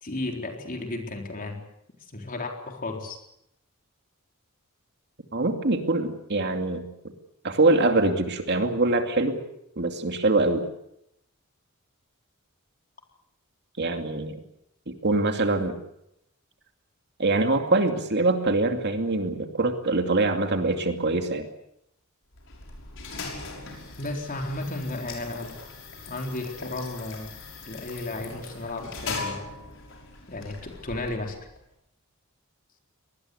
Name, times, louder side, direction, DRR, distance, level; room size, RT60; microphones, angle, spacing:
voice 1, 0.0-1.6 2.1-3.2 24.0-25.6 26.1-27.3 27.7-29.4 30.3-31.4, left 2 dB, 40° left, 3 dB, 4.0 m, -33 dB
voice 2, 5.3-6.9 7.4-9.4 9.8-10.6 13.8-14.4 14.9-15.8 17.2-21.5, right 2 dB, 50° right, 6 dB, 2.5 m, -24 dB
sound 1, 22.3-31.6, left 3 dB, 60° left, 6.0 m, -40 dB
24.5 x 19.5 x 8.1 m, 0.79 s
head